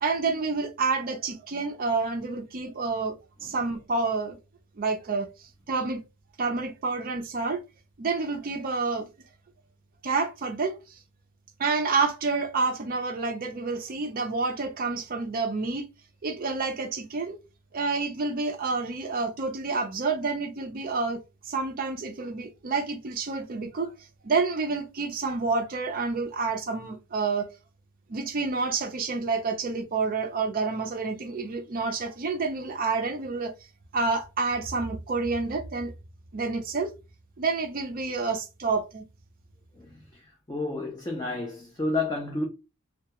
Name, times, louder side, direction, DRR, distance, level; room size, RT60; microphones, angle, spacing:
voice 1, 0.0-4.4 4.8-6.0 6.4-7.6 8.0-9.1 10.0-10.8 11.6-15.8 16.2-17.4 17.7-23.9 24.2-27.5 28.1-33.5 33.9-35.9 36.3-36.9 37.4-39.0, right 4 dB, 40° right, 0.5 m, -29 dB
voice 2, 40.5-42.5, left 2 dB, 15° left, 0.5 m, -30 dB
2.2 x 2.2 x 2.8 m
head